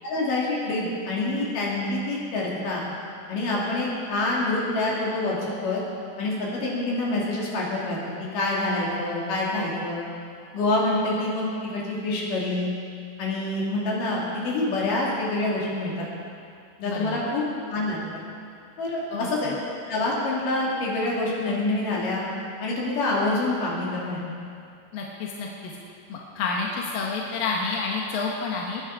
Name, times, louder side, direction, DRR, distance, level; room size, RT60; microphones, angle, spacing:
voice 1, 0.0-2.9 3.3-5.8 6.2-10.0 10.5-12.7 13.2-16.1 16.8-18.0 18.8-19.6 19.9-22.3 22.6-24.2, left 2 dB, 50° left, -5 dB, 3.8 m, -26 dB
voice 2, 16.8-17.2 19.1-19.5 24.9-25.5 26.1-28.8, left 4 dB, 70° left, -2 dB, 2.2 m, -29 dB
22.0 x 9.8 x 4.8 m, 2.5 s
omnidirectional pair, 5.7 m